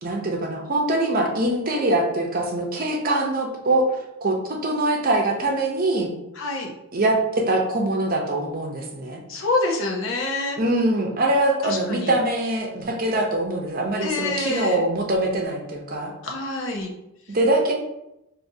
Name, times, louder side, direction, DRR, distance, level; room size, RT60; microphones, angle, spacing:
voice 1, 0.0-3.9 4.2-6.1 6.9-9.2 10.6-16.1 17.3-17.7, right 1 dB, 45° right, 0 dB, 0.7 m, -23 dB
voice 2, 6.4-6.7 9.3-10.6 11.6-12.1 14.0-14.8 16.2-16.9, left 2 dB, 70° left, 0 dB, 0.7 m, -26 dB
5.0 x 2.7 x 2.7 m, 0.88 s
head